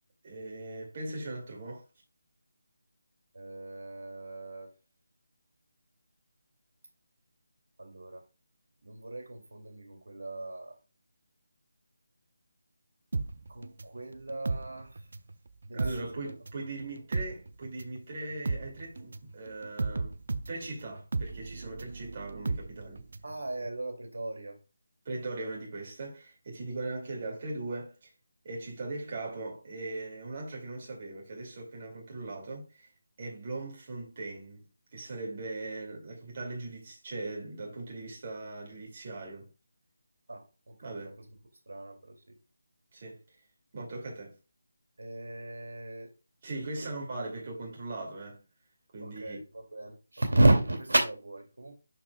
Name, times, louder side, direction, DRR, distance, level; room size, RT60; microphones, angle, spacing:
voice 1, 0.2-1.8 15.7-20.2 20.5-23.1 25.0-28.1 28.4-32.9 33.2-34.7 34.9-39.5 40.8-41.2 42.9-43.2 43.7-44.4 46.4-48.4 48.9-49.4, right 2 dB, 35° right, 2.3 m, -39 dB
voice 2, 3.3-4.7 7.8-8.2 8.8-10.8 13.5-15.0 15.6-16.2 23.2-24.6 40.3-41.1 41.7-42.4 45.0-46.1 46.8-46.9 49.0-51.7, right 2 dB, 85° right, 2.3 m, -32 dB
sound 1, 13.1-15.3 15.6-23.3 23.6-23.7, right 3 dB, 60° right, 0.6 m, -35 dB
11.5 x 4.6 x 2.3 m
figure-of-eight pair, 170°, 0 cm